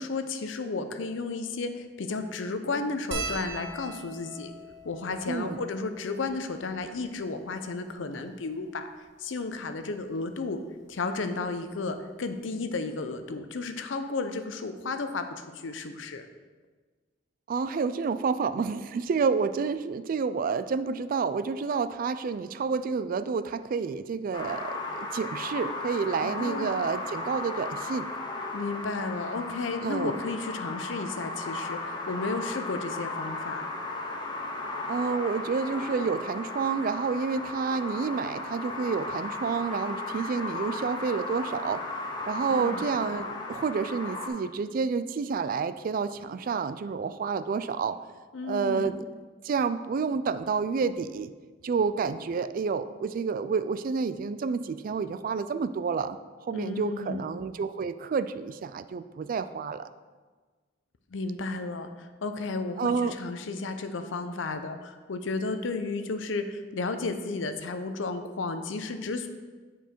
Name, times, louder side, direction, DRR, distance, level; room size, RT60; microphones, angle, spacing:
voice 1, 0.0-4.5 4.8-8.9 9.2-10.6 10.9-16.3 26.2-26.9 28.5-33.7 42.5-42.8 48.3-49.0 56.5-57.3 61.1-69.3, left 3 dB, 85° left, 8 dB, 0.6 m, -33 dB
sound 1, 3.1-7.7 8.5-8.6 8.7-8.9 10.2-10.4 11.9-12.0 12.2-12.4, right 3 dB, 80° right, 1.1 m, -41 dB
voice 2, 5.3-5.6 17.5-28.1 29.8-30.1 34.9-41.8 42.3-48.0 48.4-49.0 49.4-51.3 51.6-56.2 56.4-59.9 62.8-63.1, right 5 dB, 45° right, 13 dB, 0.3 m, -29 dB
sound 2, 24.3-44.3, left 2 dB, 25° left, 0.9 m, -36 dB
7.9 x 4.7 x 4.4 m, 1.4 s
head